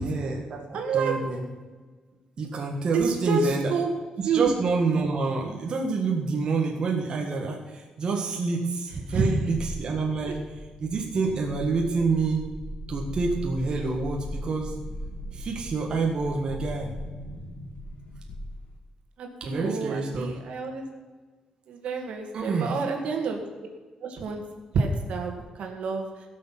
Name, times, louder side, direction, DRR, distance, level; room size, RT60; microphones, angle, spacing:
voice 1, 0.0-1.4 2.4-3.7 4.2-10.4 10.8-12.4 12.9-14.7 15.3-16.9 19.4-20.3 22.3-22.8, right 4 dB, 40° right, 0 dB, 1.7 m, -27 dB
voice 2, 0.7-1.2 2.9-3.9 4.2-4.5 9.1-9.3 19.2-20.8 21.7-23.4 24.0-24.4 24.7-26.1, right 4 dB, 70° right, 3 dB, 2.1 m, -28 dB
sound 1, 9.5-18.9, equal, 65° left, 2.0 m, -38 dB
16.5 x 6.9 x 5.9 m, 1.4 s
wide cardioid pair, 165°, 2 cm